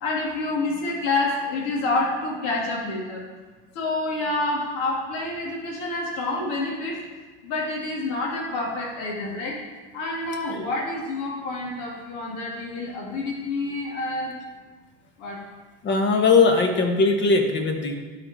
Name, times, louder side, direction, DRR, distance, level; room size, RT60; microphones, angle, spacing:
voice 1, 0.0-3.2 3.7-7.0 7.4-9.6 9.9-14.4 15.2-15.4, left 2 dB, 65° left, -3 dB, 2.3 m, -28 dB
voice 2, 15.8-17.9, left 4 dB, 35° left, 4 dB, 1.3 m, -20 dB
12.0 x 4.5 x 4.2 m, 1.4 s
supercardioid pair, 105°, 33 cm